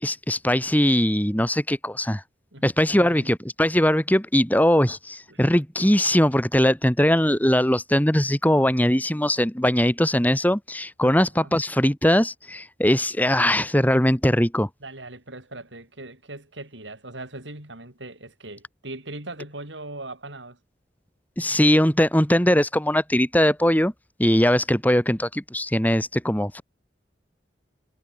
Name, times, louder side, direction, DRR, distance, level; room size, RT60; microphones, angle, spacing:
voice 1, 0.0-2.2 2.6-14.7 21.4-23.9 24.2-26.6, equal, 10° left, 3.0 m, -21 dB
voice 2, 2.5-3.3 5.3-5.4 11.0-11.5 14.8-20.6, right 2 dB, 90° right, 7.1 m, -40 dB
head